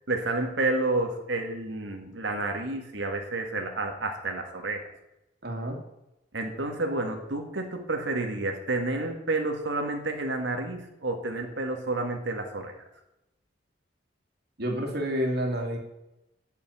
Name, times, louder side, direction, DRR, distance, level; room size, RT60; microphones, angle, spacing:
voice 1, 0.1-4.8 6.3-12.7, right 2 dB, 75° right, 3 dB, 1.9 m, -30 dB
voice 2, 5.4-5.8 14.6-15.8, equal, 55° right, 2 dB, 2.5 m, -29 dB
8.5 x 7.1 x 8.6 m, 0.90 s
head